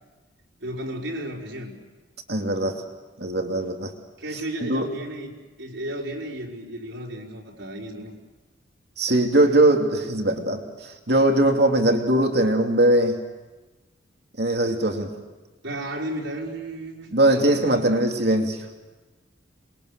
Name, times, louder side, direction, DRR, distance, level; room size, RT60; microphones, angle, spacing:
voice 1, 0.6-1.7 4.2-5.3 5.6-8.1 15.6-17.1, right 1 dB, 75° right, -2 dB, 4.8 m, -33 dB
voice 2, 2.3-2.8 3.2-3.9 4.6-4.9 9.0-13.2 14.4-15.1 17.1-18.6, right 1 dB, 55° right, 3 dB, 2.7 m, -21 dB
28.0 x 22.0 x 6.7 m, 1.2 s
head